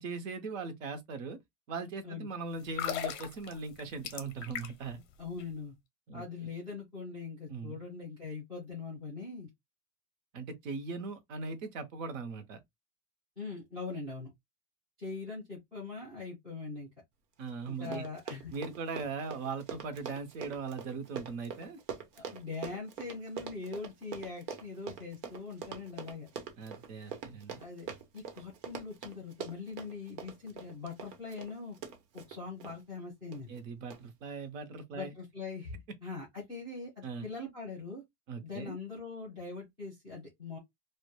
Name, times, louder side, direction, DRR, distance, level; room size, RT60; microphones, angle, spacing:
voice 1, 0.0-1.4 1.7-5.0 6.1-6.2 7.5-7.8 10.3-12.6 17.4-18.0 18.5-21.8 26.6-27.6 33.5-35.1 37.0-37.3 38.3-38.8, right 4 dB, 55° right, 0.6 m, -39 dB
sound 1, 2.6-5.0 5.2-5.4, left 9 dB, 50° left, 0.6 m, -38 dB
voice 2, 5.2-5.7 6.1-9.5 13.4-14.3 15.0-16.9 17.7-18.5 22.2-26.3 27.6-27.9 28.1-31.8 32.1-33.6 34.9-35.8 36.0-38.0 38.4-40.6, left 4 dB, 10° right, 0.3 m, -42 dB
Run, 17.5-17.6 17.8-32.8 33.3-33.6 33.9-34.0, right 7 dB, 90° right, 0.9 m, -43 dB
2.1 x 2.1 x 2.9 m
supercardioid pair, 175°, 48 cm